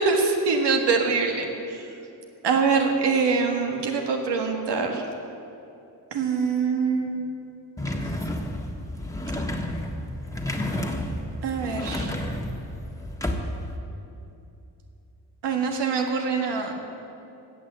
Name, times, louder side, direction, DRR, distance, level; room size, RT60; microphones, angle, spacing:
voice 1, 0.0-1.5 2.4-5.0 6.1-7.3 11.4-12.1 15.4-16.7, right 4 dB, 80° right, 2 dB, 1.6 m, -24 dB
sound 1, 7.8-13.8, left 1 dB, 10° left, 1.4 m, -31 dB
17.0 x 6.4 x 7.6 m, 2.8 s
cardioid pair, 80°, 40 cm